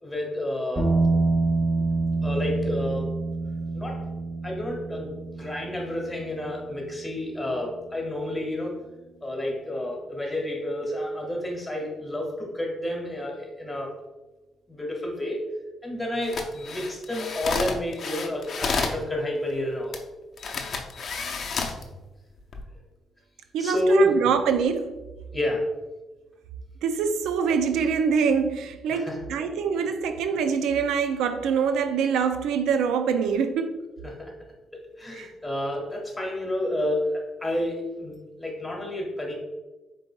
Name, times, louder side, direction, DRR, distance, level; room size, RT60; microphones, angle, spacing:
voice 1, 0.0-0.9 2.2-3.1 3.7-4.0 4.4-8.8 9.2-13.9 14.7-15.4 15.8-20.0 23.6-24.1 25.3-25.6 28.9-29.2 34.0-34.3 35.0-39.3, left 1 dB, 10° left, 1.5 m, -29 dB
sound 1, 0.8-9.1, right 3 dB, 20° right, 0.9 m, -28 dB
sound 2, 16.2-19.0 19.9-20.0 20.4-21.8 22.4-22.6, left 4 dB, 55° left, 0.6 m, -30 dB
voice 2, 23.5-25.0 26.8-33.8 35.1-35.3, right 6 dB, 85° right, 0.3 m, -24 dB
5.1 x 4.0 x 2.3 m
cardioid pair, 90°, 0 cm